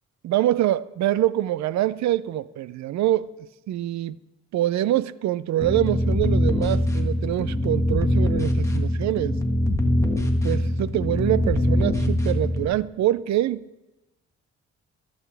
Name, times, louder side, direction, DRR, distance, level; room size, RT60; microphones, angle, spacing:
voice 1, 0.2-3.3 3.7-4.1 4.5-9.4 10.4-13.6, right 13 dB, 65° right, 0.5 m, -24 dB
sound 1, 5.6-12.7, left 1 dB, 10° left, 1.6 m, -23 dB
24.5 x 8.6 x 3.4 m
cardioid pair, 90°, 30 cm